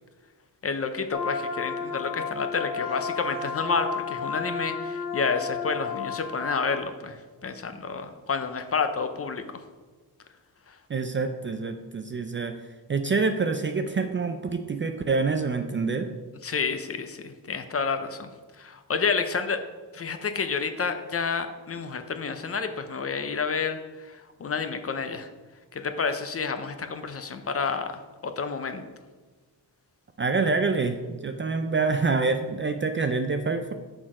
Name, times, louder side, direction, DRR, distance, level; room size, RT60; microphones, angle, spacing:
voice 1, 0.6-9.4 10.7-10.8 16.4-18.3 18.6-19.6 19.9-25.3 25.7-28.8, left 5 dB, 35° left, 8 dB, 0.6 m, -30 dB
sound 1, 1.1-6.8, left 5 dB, 75° left, 1.4 m, -32 dB
voice 2, 10.9-12.6 12.9-16.1 30.2-33.7, right 4 dB, 30° right, 7 dB, 0.4 m, -26 dB
6.2 x 6.1 x 4.9 m, 1.3 s
wide cardioid pair, 150°, 41 cm